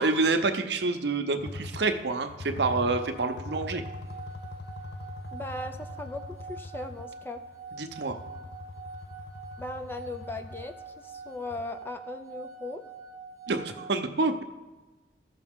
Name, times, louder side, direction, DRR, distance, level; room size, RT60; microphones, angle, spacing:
voice 1, 0.0-3.8 7.8-8.2 13.5-14.4, right 3 dB, 70° right, 7 dB, 0.7 m, -27 dB
sound 1, 1.4-11.7, left 2 dB, 65° left, 0.6 m, -42 dB
sound 2, 2.6-13.9, right 4 dB, 15° right, 0.8 m, -45 dB
voice 2, 5.3-7.4 9.6-12.8, left 2 dB, 10° left, 6 dB, 0.4 m, -38 dB
14.0 x 5.8 x 3.6 m, 1.2 s
head